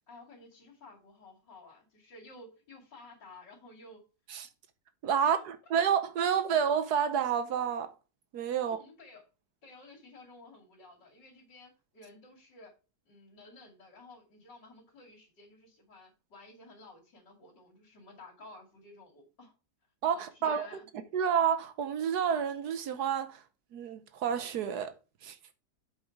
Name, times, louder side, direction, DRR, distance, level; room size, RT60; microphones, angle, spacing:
voice 1, 0.1-4.0 5.2-5.4 8.6-9.2 9.6-12.7 13.0-19.5 20.1-20.9, left 2 dB, 75° left, 3.2 m, -53 dB
voice 2, 5.0-7.9 8.3-8.8 20.0-20.7 21.1-23.4 23.7-24.9 25.2-25.4, right 8 dB, 65° right, 1.3 m, -29 dB
8.1 x 4.6 x 4.6 m
omnidirectional pair, 1.9 m